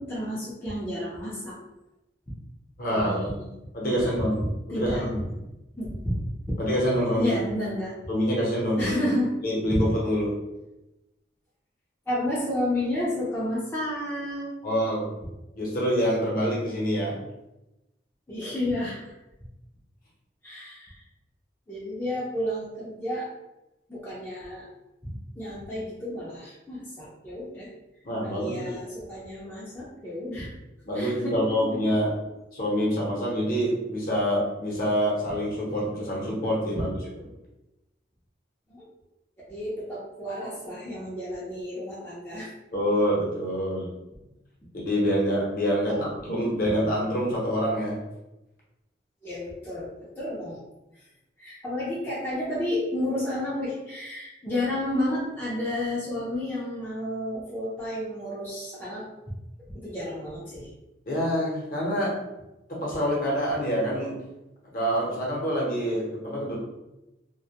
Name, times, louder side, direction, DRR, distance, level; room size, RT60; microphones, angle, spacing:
voice 1, 0.0-1.6 2.3-2.4 2.9-3.5 3.9-5.1 5.7-6.5 7.2-7.9 8.8-9.3 9.7-9.8 12.1-14.5 18.3-19.1 20.4-21.0 21.7-23.3 23.9-24.7 25.0-27.7 28.2-30.5 30.9-31.6 36.7-36.8 38.7-38.8 39.5-42.5 45.9-46.1 49.2-50.6 50.9-51.0 51.4-59.1 59.7-60.7, left 1 dB, 10° left, -9 dB, 0.4 m, -31 dB
voice 2, 2.8-3.3 3.7-4.4 4.7-5.3 6.6-7.4 8.1-9.0 9.4-10.3 14.6-15.1 15.6-17.2 28.0-28.8 30.8-32.1 32.5-36.9 42.7-43.9 44.8-48.0 61.1-62.1 62.7-64.1 64.7-66.5, equal, 50° left, -4 dB, 0.7 m, -26 dB
2.2 x 2.1 x 2.7 m, 0.96 s
head